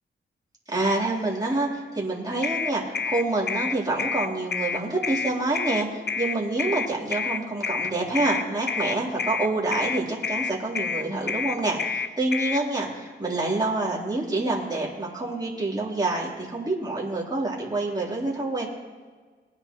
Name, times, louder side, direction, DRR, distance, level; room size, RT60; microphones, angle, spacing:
voice 1, 0.7-18.7, right 2 dB, 20° right, -5 dB, 3.6 m, -27 dB
sound 1, 2.4-12.6, left 5 dB, 55° left, 0.7 m, -28 dB
20.5 x 9.8 x 3.1 m, 1.5 s
cardioid pair, 70°, 21 cm